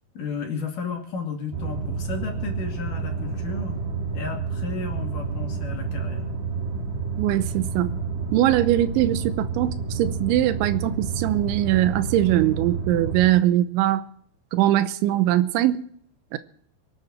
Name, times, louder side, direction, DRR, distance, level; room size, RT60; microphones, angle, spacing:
voice 1, 0.2-3.8 4.1-6.3, left 4 dB, 50° left, 2 dB, 3.6 m, -33 dB
sound 1, 1.5-13.3, right 4 dB, 65° right, 6.2 m, -29 dB
voice 2, 7.2-7.9 8.3-14.1 14.5-15.9 16.3-16.4, right 13 dB, 90° right, 12 dB, 3.2 m, -21 dB
24.5 x 8.4 x 6.1 m, 0.65 s
omnidirectional pair, 5.2 m